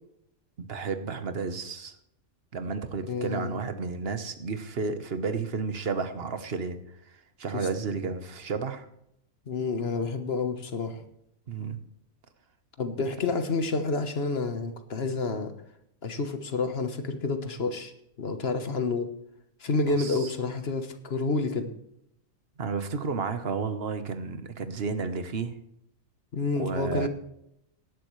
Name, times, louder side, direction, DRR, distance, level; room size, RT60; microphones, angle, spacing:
voice 1, 0.6-1.9 2.5-6.8 7.1-8.9 11.5-11.8 19.9-20.3 22.6-25.6 26.6-27.1, right 4 dB, 50° right, 9 dB, 1.3 m, -32 dB
voice 2, 3.1-3.6 7.5-7.7 9.5-11.0 12.8-15.5 16.0-17.9 18.2-19.1 19.6-21.7 26.3-27.1, left 3 dB, 50° left, 8 dB, 1.4 m, -29 dB
17.5 x 11.0 x 3.2 m, 0.77 s
omnidirectional pair, 1.4 m